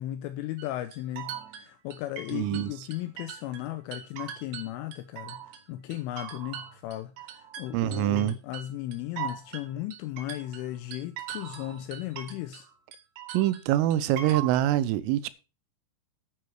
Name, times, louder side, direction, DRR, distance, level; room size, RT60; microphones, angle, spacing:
voice 1, 0.0-12.7, left 14 dB, 80° left, 3.1 m, -36 dB
sound 1, 0.6-3.6 3.9-5.6 5.9-12.7 12.9-14.7, right 10 dB, 70° right, 3.3 m, -40 dB
voice 2, 2.3-2.7 7.7-8.4 13.3-15.3, right 13 dB, 85° right, 3.3 m, -25 dB
10.0 x 9.4 x 4.7 m
omnidirectional pair, 5.9 m